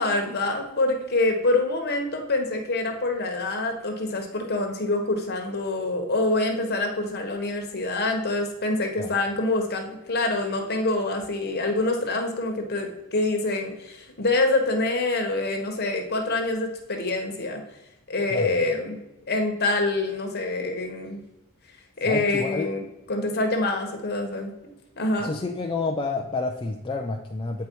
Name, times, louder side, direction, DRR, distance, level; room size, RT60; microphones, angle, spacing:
voice 1, 0.0-17.6 18.1-19.0 19.3-21.2 22.0-22.8 23.1-24.5 25.0-25.3, left 2 dB, 45° left, 3 dB, 1.2 m, -26 dB
voice 2, 22.1-22.7 25.2-27.7, left 3 dB, 25° left, 1 dB, 0.5 m, -29 dB
8.2 x 4.6 x 4.6 m, 0.96 s
head